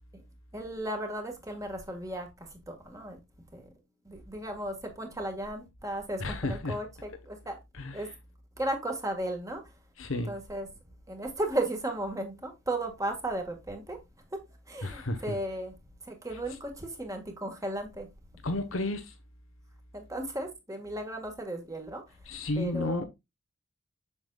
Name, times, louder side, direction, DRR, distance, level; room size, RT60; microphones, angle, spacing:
voice 1, 0.5-3.2 3.5-3.7 4.1-7.6 7.9-8.1 8.6-9.6 10.3-10.7 11.1-14.0 14.3-14.4 14.7-15.7 16.0-18.1 19.9-22.0 22.6-23.0, right 1 dB, 15° right, 1.6 m, -35 dB
voice 2, 6.2-6.7 7.8-7.9 10.0-10.3 14.8-15.3 18.4-19.0 22.3-23.0, left 2 dB, 90° left, 1.0 m, -31 dB
7.2 x 6.8 x 2.3 m
head